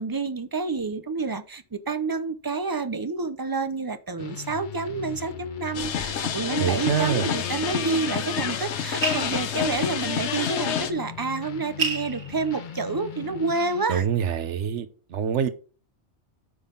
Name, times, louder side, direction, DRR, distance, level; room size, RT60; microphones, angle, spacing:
voice 1, 0.0-14.0, right 4 dB, 30° right, 0.4 m, -29 dB
sound 1, 4.2-13.9, left 7 dB, 50° left, 0.7 m, -39 dB
sound 2, 5.7-10.9, left 8 dB, 80° left, 1.1 m, -28 dB
sound 3, 5.9-13.7, right 5 dB, 65° right, 1.3 m, -37 dB
voice 2, 6.6-7.3 13.9-15.5, right 8 dB, 85° right, 1.2 m, -25 dB
8.7 x 5.6 x 3.8 m
omnidirectional pair, 1.2 m